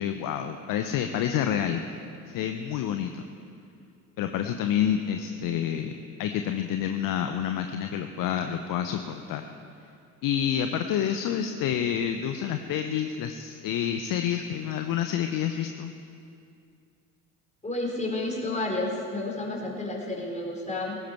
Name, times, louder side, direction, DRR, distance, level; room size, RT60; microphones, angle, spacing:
voice 1, 0.0-1.8 2.3-3.3 4.2-9.5 10.2-15.9, left 9 dB, 45° left, 7 dB, 1.0 m, -28 dB
voice 2, 17.6-21.0, left 2 dB, 15° left, -2 dB, 4.7 m, -31 dB
19.0 x 16.0 x 4.6 m, 2.4 s
figure-of-eight pair, 65°, 48 cm